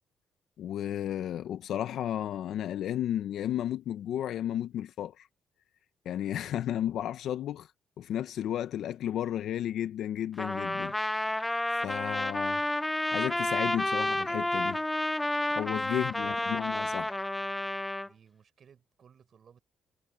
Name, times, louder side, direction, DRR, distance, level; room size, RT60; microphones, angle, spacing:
voice 1, 0.6-5.3 6.0-7.7 8.0-10.9 11.7-12.6 13.1-14.8 15.5-17.2, left 11 dB, 75° left, 0.7 m, -33 dB
Trumpet, 10.4-18.1, left 1 dB, 10° left, 0.5 m, -30 dB
voice 2, 15.6-16.6 18.0-19.6, right 7 dB, 55° right, 6.5 m, -58 dB
cardioid pair, 90°, 0 cm